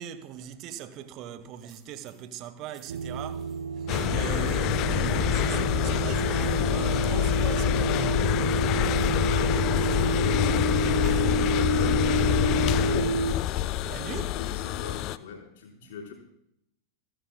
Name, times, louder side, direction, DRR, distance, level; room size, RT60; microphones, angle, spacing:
voice 1, 0.0-3.5 3.8-8.2 13.8-14.4 15.8-16.0, right 10 dB, 40° right, 1.1 m, -40 dB
sound 1, 1.6-2.2 2.7-4.6 4.9-5.6 6.0-6.4 6.9-7.0 7.6-7.7 8.3-8.4 8.8-9.5 9.9-11.3 11.7-12.4 12.8-13.2, right 3 dB, 20° right, 3.7 m, -50 dB
sound 2, 2.9-13.3, right 4 dB, 65° right, 0.6 m, -29 dB
sound 3, 3.9-15.2, left 13 dB, 40° left, 0.5 m, -26 dB
voice 2, 8.9-16.1, left 5 dB, 55° left, 4.3 m, -41 dB
28.5 x 14.0 x 2.2 m
figure-of-eight pair, 90°, 0 cm